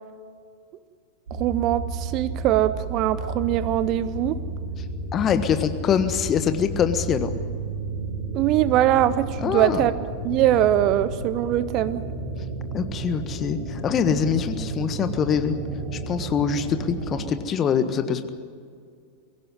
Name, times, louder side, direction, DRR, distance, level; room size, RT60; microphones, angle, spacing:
voice 1, 1.3-4.4 8.3-9.9 10.2-12.0, right 12 dB, 40° right, 15 dB, 0.8 m, -22 dB
sound 1, 1.3-17.3, right 2 dB, 70° right, 6.7 m, -32 dB
voice 2, 5.1-7.3 9.4-9.9 12.7-15.5 15.9-18.3, left 7 dB, 25° left, 9 dB, 1.5 m, -24 dB
23.5 x 16.5 x 9.5 m, 2.2 s
figure-of-eight pair, 90°, 0 cm